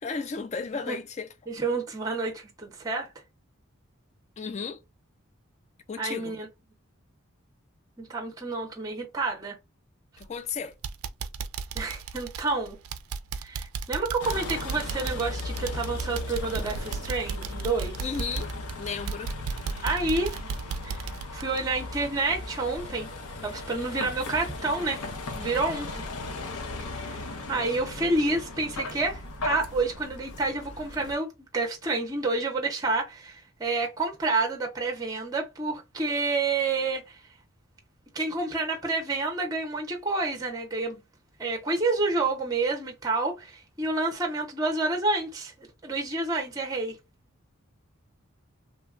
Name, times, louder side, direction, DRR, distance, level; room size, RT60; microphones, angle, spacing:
voice 1, 0.0-1.3 4.4-4.8 5.9-6.4 10.2-10.8 18.0-18.5 18.8-19.3, left 5 dB, 30° left, 0.3 m, -34 dB
voice 2, 1.5-3.1 6.0-6.5 8.0-9.6 11.7-12.8 13.4-17.9 19.8-20.4 20.8-21.1 21.3-23.1 23.4-25.0 25.3-26.0 26.9-37.2 38.1-41.0 41.4-47.0, right 3 dB, 15° right, 0.6 m, -29 dB
sound 1, 10.2-10.5 10.8-22.4 22.7-22.9 23.3-23.4, right 5 dB, 75° right, 0.4 m, -35 dB
Vehicle, 14.2-31.1, left 2 dB, 90° left, 0.6 m, -37 dB
3.0 x 2.2 x 2.4 m
head